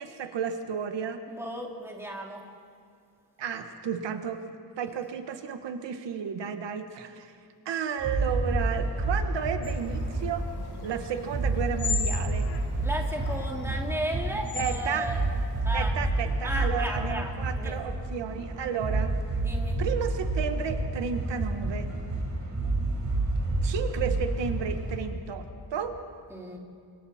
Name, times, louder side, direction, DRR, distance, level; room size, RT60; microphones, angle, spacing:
voice 1, 0.0-1.2 3.4-4.4 4.8-7.3 7.6-10.4 10.8-12.5 14.5-15.1 15.7-19.1 19.8-21.9 23.6-25.5 25.7-25.9, right 7 dB, 85° right, 7 dB, 1.5 m, -32 dB
voice 2, 1.3-2.4 12.8-15.2 15.6-15.9 16.4-17.3 17.6-17.8 19.4-19.8 26.3-26.6, right 1 dB, 5° right, -1 dB, 2.6 m, -34 dB
sound 1, 8.0-25.0, right 2 dB, 45° right, 4.5 m, -29 dB
sound 2, 9.6-15.6, left 7 dB, 65° left, 1.7 m, -39 dB
29.5 x 25.0 x 4.3 m, 2.2 s
wide cardioid pair, 180°, 42 cm